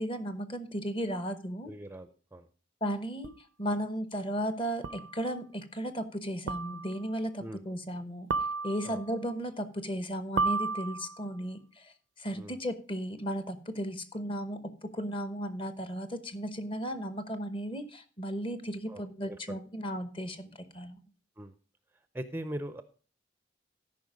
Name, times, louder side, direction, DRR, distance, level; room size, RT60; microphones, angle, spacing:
voice 1, 0.0-1.7 2.8-3.3 3.6-8.3 8.6-11.6 12.2-20.9, equal, 30° left, 11 dB, 1.0 m, -35 dB
voice 2, 1.7-2.5 7.4-7.6 8.8-9.0 12.3-12.6 18.9-19.6 21.4-21.5 22.1-22.8, right 1 dB, 10° right, 11 dB, 0.5 m, -41 dB
sound 1, 3.2-3.3 4.8-5.2 6.5-7.0 8.3-9.1 10.4-11.3, right 4 dB, 85° right, 0.5 m, -32 dB
13.0 x 5.4 x 5.1 m, 0.38 s
head